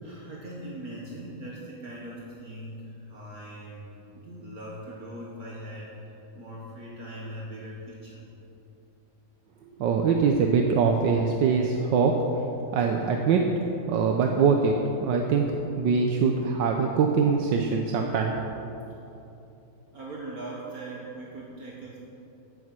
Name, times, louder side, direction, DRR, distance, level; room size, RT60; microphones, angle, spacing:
voice 1, 0.0-8.3 19.9-22.0, right 1 dB, 55° right, -4 dB, 1.9 m, -40 dB
voice 2, 9.8-12.2 12.7-13.4 13.9-15.5 15.8-18.3, right 5 dB, 80° right, 3 dB, 1.5 m, -23 dB
16.0 x 7.4 x 6.1 m, 2.9 s
omnidirectional pair, 1.9 m